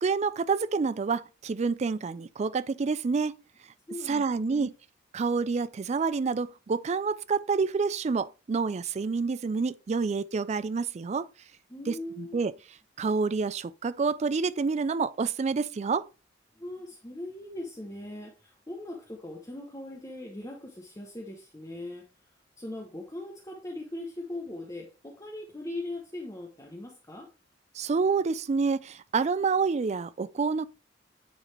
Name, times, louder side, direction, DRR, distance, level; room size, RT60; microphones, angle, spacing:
voice 1, 0.0-3.4 4.0-4.7 5.1-11.3 11.9-12.5 13.0-16.1 27.7-30.7, right 4 dB, 35° right, 0.3 m, -28 dB
voice 2, 3.9-4.7 11.7-12.4 16.5-22.1 22.6-27.3, left 1 dB, 15° left, 0.9 m, -40 dB
9.2 x 4.0 x 3.3 m
head